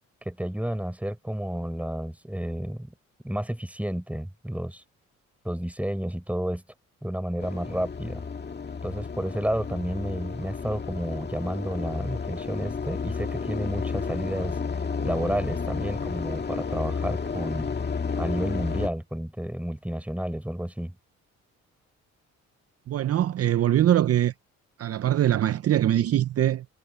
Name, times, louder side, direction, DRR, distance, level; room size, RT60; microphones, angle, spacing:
voice 1, 0.3-2.9 3.2-4.8 5.4-6.6 7.0-8.2 8.8-14.6 15.0-17.7 18.2-21.0, right 1 dB, 5° right, 5.6 m, -31 dB
sound 1, 7.4-18.9, left 5 dB, 35° left, 2.2 m, -32 dB
voice 2, 22.9-24.3 24.8-26.8, right 12 dB, 50° right, 0.6 m, -22 dB
cardioid pair, 90°, 30 cm